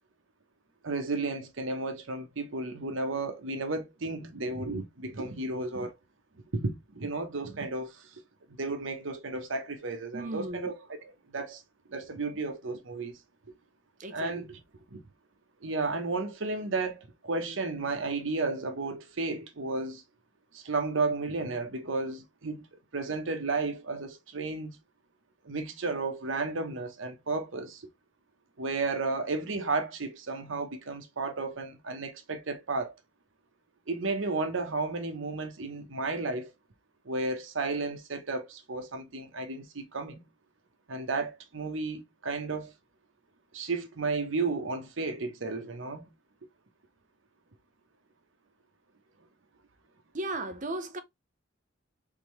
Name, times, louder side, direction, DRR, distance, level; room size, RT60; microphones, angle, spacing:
voice 1, 0.8-6.0 6.5-8.2 8.5-11.6 11.9-13.2 14.1-14.6 14.9-15.0 15.6-20.0 20.5-22.6 22.9-24.8 25.4-27.9 28.6-32.9 33.9-36.5 37.0-40.2 40.9-42.7 43.5-46.1, right 3 dB, 85° right, 0.9 m, -33 dB
voice 2, 10.1-10.7 14.0-14.4 50.1-51.0, right 2 dB, 40° right, 0.8 m, -35 dB
3.7 x 3.6 x 3.1 m
head